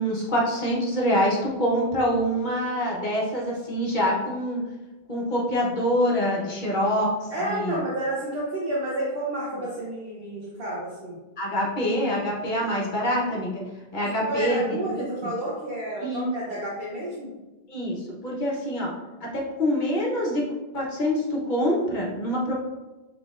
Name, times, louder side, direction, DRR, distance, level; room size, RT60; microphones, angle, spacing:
voice 1, 0.0-4.6 5.1-7.8 11.4-13.6 13.9-15.3 16.0-16.2 17.7-18.9 19.2-20.5 20.7-22.5, equal, 50° left, -3 dB, 1.1 m, -25 dB
voice 2, 7.3-11.2 14.0-17.3, right 1 dB, 65° right, -6 dB, 1.1 m, -30 dB
6.0 x 3.4 x 2.4 m, 1.1 s
omnidirectional pair, 1.0 m